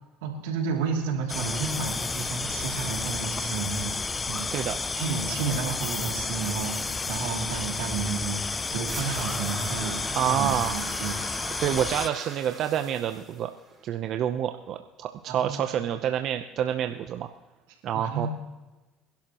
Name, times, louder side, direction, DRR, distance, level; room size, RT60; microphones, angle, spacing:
voice 1, 0.2-3.9 4.3-4.6 4.9-11.2 15.3-15.6 17.9-18.3, right 5 dB, 90° right, 0 dB, 2.9 m, -31 dB
sound 1, 1.3-12.1, left 4 dB, 25° left, 0.5 m, -31 dB
sound 2, 8.8-13.9, right 3 dB, 25° right, 5.4 m, -40 dB
voice 2, 10.1-10.8 11.6-13.5 13.8-17.3 17.8-18.3, right 10 dB, 60° right, 7 dB, 0.8 m, -28 dB
27.0 x 11.5 x 3.1 m, 1.2 s
supercardioid pair, 90°, 0 cm